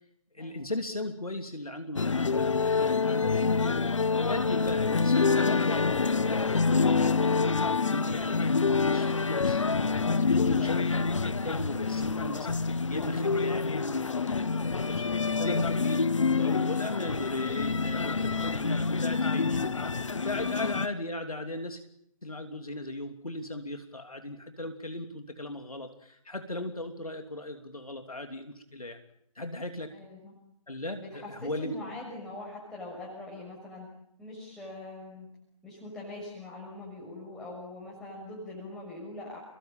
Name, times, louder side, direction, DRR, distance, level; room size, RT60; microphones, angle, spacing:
voice 1, 0.3-3.8 4.1-7.4 7.9-15.1 15.4-16.0 16.4-19.7 20.2-21.8 22.2-29.0 29.3-29.9 30.7-31.8, left 1 dB, 75° left, 5 dB, 3.0 m, -37 dB
sound 1, 2.0-20.9, left 4 dB, 55° left, 1.5 m, -27 dB
voice 2, 20.4-20.9 29.9-30.3 31.0-33.9 34.2-35.3 35.6-39.4, left 2 dB, ahead, -4 dB, 6.5 m, -43 dB
29.5 x 22.5 x 8.9 m, 0.77 s
figure-of-eight pair, 145°, 19 cm